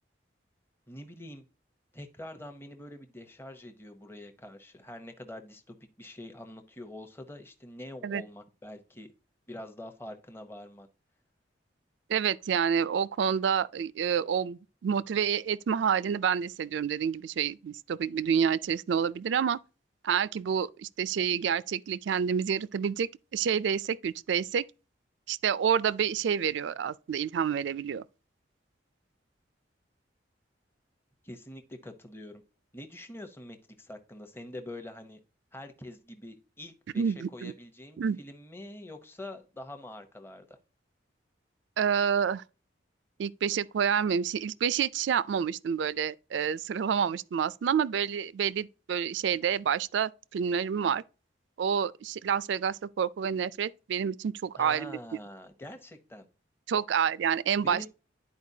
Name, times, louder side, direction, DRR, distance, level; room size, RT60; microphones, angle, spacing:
voice 1, 0.9-1.4 1.9-9.1 9.5-10.9 31.2-32.4 32.7-35.2 35.5-40.6 54.6-56.3 57.6-57.9, left 1 dB, 10° left, 0.7 m, -45 dB
voice 2, 12.1-19.6 20.0-24.6 25.3-28.0 37.0-37.5 38.0-38.2 41.8-42.4 43.2-51.0 51.6-55.0 56.7-57.9, right 7 dB, 75° right, 0.3 m, -28 dB
11.0 x 4.4 x 2.7 m
head